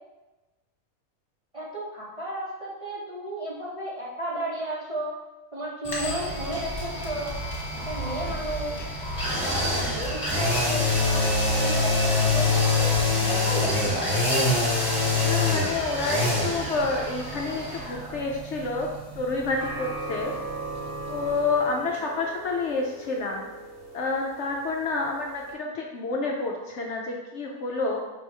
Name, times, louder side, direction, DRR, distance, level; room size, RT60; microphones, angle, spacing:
voice 1, 1.5-5.2 5.5-7.3 7.8-8.8 9.3-12.9 13.3-14.2, right 1 dB, 30° right, -7 dB, 0.8 m, -33 dB
sound 1, 5.8-21.7 21.9-22.0, left 2 dB, 15° left, 1.3 m, -26 dB
sound 2, 6.0-13.1, right 1 dB, 35° left, 1.1 m, -36 dB
voice 2, 15.2-18.9 19.2-20.3 21.1-23.5 23.9-28.0, left 3 dB, 65° left, 0 dB, 0.8 m, -29 dB
sound 3, 19.6-25.5, right 2 dB, 70° right, 1.5 m, -38 dB
5.3 x 2.9 x 3.3 m, 1.1 s
omnidirectional pair, 1.5 m